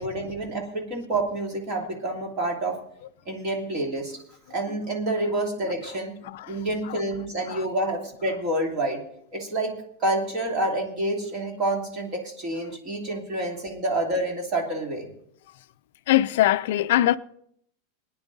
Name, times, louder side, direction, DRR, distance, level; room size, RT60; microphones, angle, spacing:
voice 1, 0.0-2.8 3.3-4.2 4.5-6.1 6.5-9.0 9.3-9.7 10.0-15.1, right 1 dB, 30° right, 2.8 m, -28 dB
voice 2, 16.1-17.2, left 14 dB, 60° left, 0.4 m, -22 dB
20.5 x 10.0 x 4.0 m
supercardioid pair, 175°, 0 cm